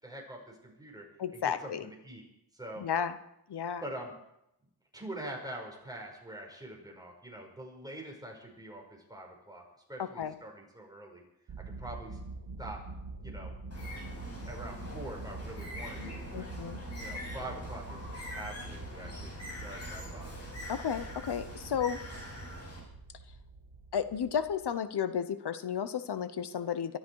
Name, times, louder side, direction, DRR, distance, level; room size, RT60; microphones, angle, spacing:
voice 1, 0.0-1.1 1.3-2.3 2.5-2.8 3.8-4.1 4.9-11.2 11.7-12.2 12.6-12.8 13.2-13.5 14.4-16.5 17.0-20.4, right 1 dB, 10° right, 0 dB, 5.2 m, -44 dB
voice 2, 1.2-1.9 2.8-3.2 3.5-3.8 10.0-10.4 16.3-16.8 20.7-22.0 23.9-27.0, left 8 dB, 75° left, 13 dB, 1.0 m, -33 dB
sound 1, 11.5-24.6, right 3 dB, 70° right, 2.0 m, -45 dB
Bird, 13.7-22.8, left 1 dB, 40° left, 6.3 m, -44 dB
23.5 x 12.5 x 4.7 m, 0.82 s
wide cardioid pair, 100°, 40 cm